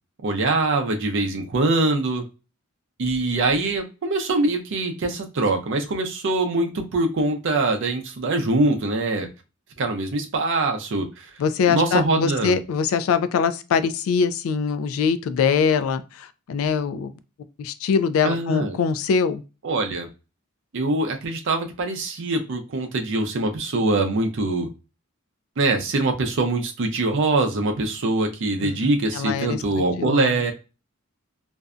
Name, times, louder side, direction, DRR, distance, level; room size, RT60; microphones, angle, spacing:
voice 1, 0.2-2.2 3.0-9.3 9.8-11.3 11.6-12.6 18.2-18.8 19.6-20.1 20.7-24.7 25.6-30.5, right 2 dB, 60° right, 0.5 m, -23 dB
voice 2, 11.4-17.1 17.6-19.4 28.6-30.4, left 6 dB, 75° left, 0.3 m, -23 dB
2.5 x 2.0 x 2.4 m
head